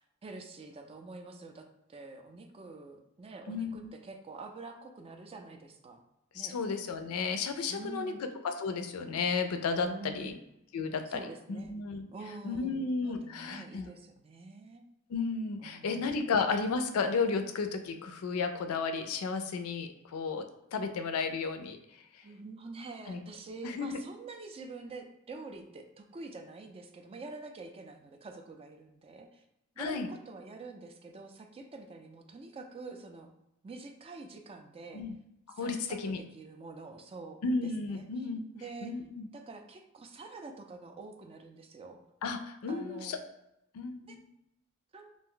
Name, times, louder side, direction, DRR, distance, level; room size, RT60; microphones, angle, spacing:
voice 1, 0.0-6.0 6.3-6.6 7.7-8.2 9.8-10.4 11.1-11.7 12.1-14.8 15.6-16.3 22.2-29.4 29.8-33.3 33.6-35.0 35.5-38.0 38.5-38.9 39.3-42.0 42.7-43.2 44.0-44.2 44.9-45.1, right 3 dB, 25° right, 4 dB, 0.3 m, -46 dB
voice 2, 3.5-3.9 6.3-10.4 10.7-12.1 12.4-13.9 15.1-20.5 20.7-21.8 23.1-23.2 23.6-24.0 29.8-30.1 34.9-35.1 35.6-36.2 37.4-38.4 38.8-39.3 42.2-43.2 43.7-44.2, left 4 dB, 90° left, 7 dB, 0.4 m, -33 dB
2.5 x 2.1 x 3.7 m, 0.84 s
head